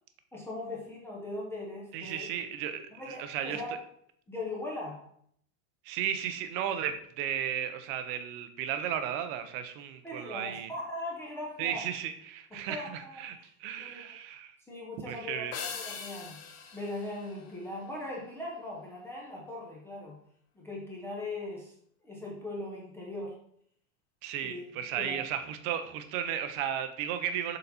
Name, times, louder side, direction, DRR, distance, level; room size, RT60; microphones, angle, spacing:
voice 1, 0.3-2.3 2.9-3.7 4.3-5.0 10.0-11.8 12.5-13.2 13.8-14.2 14.7-16.4 16.7-20.2 20.6-21.7 22.0-23.4 24.4-24.6 25.0-25.2, left 2 dB, 5° left, -4 dB, 0.6 m, -39 dB
voice 2, 1.9-3.6 5.8-10.7 11.6-14.6 15.1-15.5 24.2-27.6, right 9 dB, 40° right, 9 dB, 0.6 m, -34 dB
sound 1, 15.5-18.1, left 7 dB, 40° left, 0.9 m, -42 dB
6.8 x 4.1 x 4.0 m, 0.66 s
supercardioid pair, 170°, 43 cm